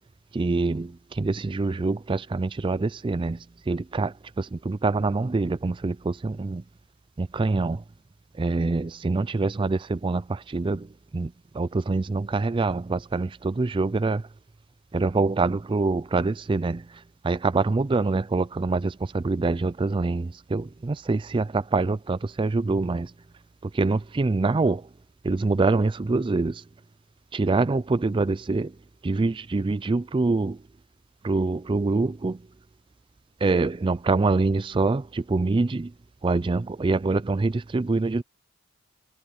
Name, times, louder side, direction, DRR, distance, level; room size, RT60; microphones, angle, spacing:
voice 1, 0.3-6.6 7.2-7.8 8.3-14.3 14.9-23.1 23.6-24.9 25.2-26.7 27.3-28.8 29.0-30.6 31.2-32.5 33.4-35.9 36.2-38.2, right 3 dB, 20° right, 0.3 m, -25 dB
head